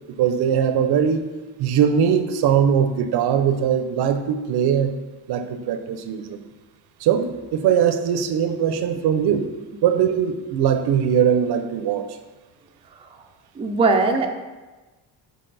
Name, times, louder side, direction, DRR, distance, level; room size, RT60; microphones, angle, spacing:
voice 1, 0.2-1.2 1.6-5.0 5.3-6.4 7.0-9.5 9.8-12.2, right 8 dB, 60° right, 9 dB, 0.6 m, -20 dB
voice 2, 13.6-14.3, right 3 dB, 15° right, 3 dB, 0.3 m, -19 dB
6.5 x 4.0 x 3.9 m, 1.2 s
cardioid pair, 155°, 45 cm